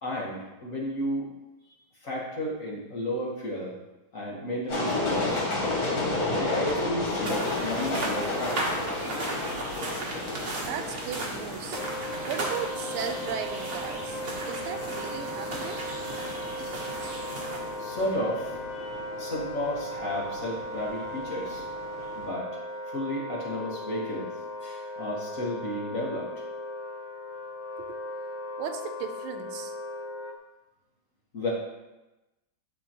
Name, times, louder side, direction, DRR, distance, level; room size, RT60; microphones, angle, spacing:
voice 1, 0.0-1.3 2.0-3.7 4.1-5.4 6.3-8.6 17.8-21.6 22.1-22.5 22.9-24.3 24.6-26.3 31.3-31.5, left 1 dB, 45° left, -4 dB, 1.4 m, -33 dB
sound 1, 4.7-22.3, left 2 dB, 65° left, 2.4 m, -33 dB
sound 2, 7.2-18.1, right 2 dB, 45° right, 1.1 m, -36 dB
voice 2, 10.7-11.8 12.3-15.8 27.8-28.0 28.6-29.8, right 7 dB, 85° right, 7 dB, 1.5 m, -36 dB
Wind instrument woodwind instrument, 11.7-30.4, left 1 dB, 85° left, 1.7 m, -37 dB
11.0 x 3.8 x 2.9 m, 1.0 s
omnidirectional pair, 2.3 m